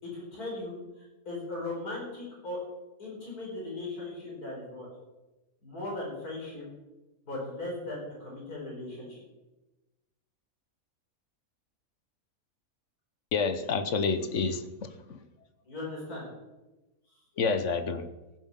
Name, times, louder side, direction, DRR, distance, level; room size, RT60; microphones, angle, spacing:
voice 1, 0.0-2.6 3.0-4.9 5.6-6.7 7.3-9.2 15.7-16.3, left 2 dB, 80° left, 5.5 m, -38 dB
voice 2, 13.3-15.2 17.4-18.1, left 4 dB, 55° left, 1.2 m, -29 dB
15.5 x 7.8 x 7.3 m
omnidirectional pair, 1.6 m